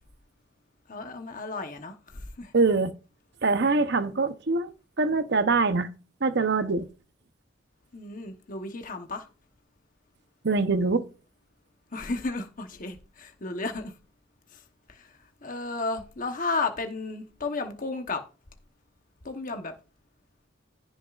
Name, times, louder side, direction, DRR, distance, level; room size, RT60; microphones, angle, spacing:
voice 1, 0.9-2.5 7.9-9.3 11.9-13.9 14.5-14.6 14.9-18.2 19.2-19.7, left 3 dB, 45° left, 1.0 m, -33 dB
voice 2, 2.5-2.9 3.4-5.9 6.2-6.9 10.4-11.1, right 3 dB, 55° right, 0.9 m, -24 dB
15.5 x 6.4 x 2.5 m
head